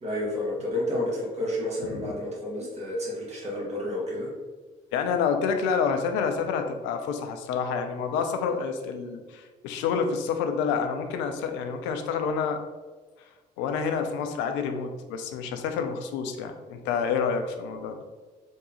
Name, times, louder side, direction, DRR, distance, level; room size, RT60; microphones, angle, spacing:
voice 1, 0.0-4.3, left 1 dB, 30° right, -4 dB, 1.3 m, -30 dB
voice 2, 4.9-12.6 13.6-18.0, left 6 dB, 60° left, 6 dB, 0.4 m, -28 dB
3.6 x 2.6 x 2.8 m, 1.3 s
figure-of-eight pair, 45°, 21 cm